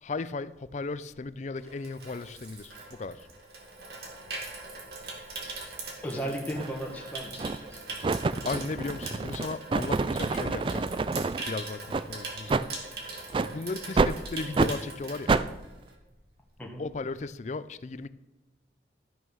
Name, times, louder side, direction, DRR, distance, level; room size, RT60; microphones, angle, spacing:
voice 1, 0.0-3.3 6.2-6.3 8.4-10.9 11.5-12.6 13.5-15.3 16.8-18.1, left 3 dB, 40° left, 15 dB, 0.4 m, -36 dB
Water tap faucet / Sink (filling or washing), 1.1-16.1 16.4-16.7, right 3 dB, 65° right, 2.2 m, -41 dB
voice 2, 6.0-8.1 16.6-16.8, right 1 dB, 10° left, -1 dB, 1.6 m, -36 dB
sound 1, 6.6-6.7 7.4-7.7 8.0-11.4 11.9-12.1 12.5-12.7 13.3-13.5 14.0-14.2 14.5-14.7 15.3-15.5, right 3 dB, 30° right, 0.3 m, -27 dB
12.5 x 6.3 x 6.2 m, 1.0 s
head